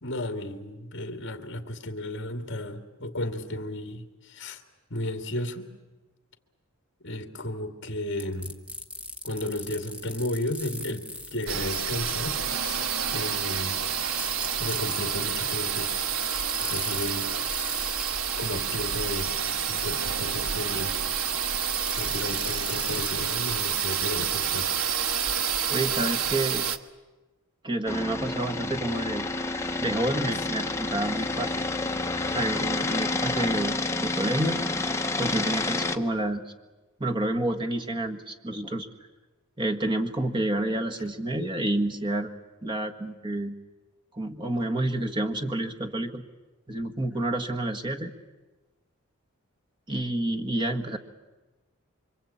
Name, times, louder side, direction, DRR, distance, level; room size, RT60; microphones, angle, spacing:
voice 1, 0.0-4.6 4.9-5.7 7.0-8.5 9.2-11.0 11.3-12.8 13.1-13.8 14.5-15.9 16.6-17.3 18.4-19.3 19.7-21.0 22.0-24.7 30.3-30.4, left 1 dB, 50° left, 6 dB, 2.5 m, -34 dB
sound 1, 8.2-12.3 14.2-15.0 16.2-18.7 21.5-23.2, left 1 dB, 5° right, 1.5 m, -38 dB
sound 2, 11.5-26.8, right 7 dB, 75° right, 1.2 m, -28 dB
voice 2, 25.7-26.6 27.6-29.2 29.8-31.6 32.3-34.6 35.2-36.4 37.0-38.9 39.6-42.3 42.6-43.5 44.1-46.2 46.7-48.1 49.9-51.0, right 1 dB, 20° right, 3 dB, 1.7 m, -29 dB
sound 3, 27.9-36.0, left 2 dB, 10° left, 1.0 m, -29 dB
27.0 x 24.5 x 8.8 m, 1.2 s
head